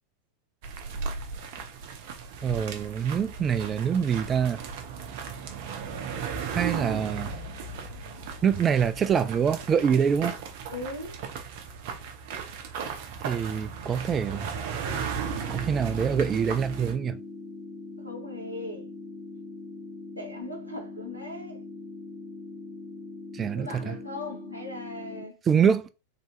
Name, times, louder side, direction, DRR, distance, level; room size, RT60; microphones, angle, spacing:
sound 1, 0.6-16.9, right 5 dB, 50° right, 0.7 m, -36 dB
voice 1, 2.4-4.6 6.5-7.3 8.4-10.3 13.2-14.5 15.5-17.2 23.3-23.9 25.5-25.9, right 7 dB, 25° right, 0.3 m, -25 dB
voice 2, 10.7-11.2 18.0-18.9 20.2-21.6 23.6-25.4, left 2 dB, 90° left, 0.9 m, -39 dB
sound 2, 15.2-25.2, left 3 dB, 15° left, 0.8 m, -42 dB
3.3 x 2.7 x 3.0 m
figure-of-eight pair, 90°, 0 cm